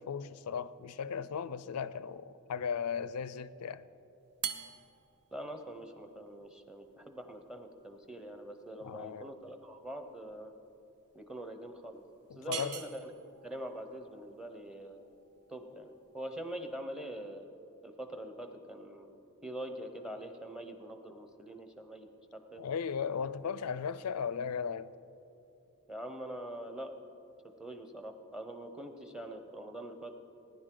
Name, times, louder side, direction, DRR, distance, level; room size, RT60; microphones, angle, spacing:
voice 1, 0.0-3.9 8.8-9.3 12.3-12.8 22.6-24.9, left 6 dB, 85° left, 0.4 m, -36 dB
sound 1, 4.3-16.7, right 8 dB, 75° right, 0.8 m, -47 dB
voice 2, 5.3-10.5 11.1-12.0 12.3-13.1 13.4-15.1 15.5-17.5 17.8-19.1 19.4-22.6 25.9-26.9 27.6-30.2, right 1 dB, 5° right, 0.8 m, -44 dB
19.5 x 10.5 x 3.9 m
head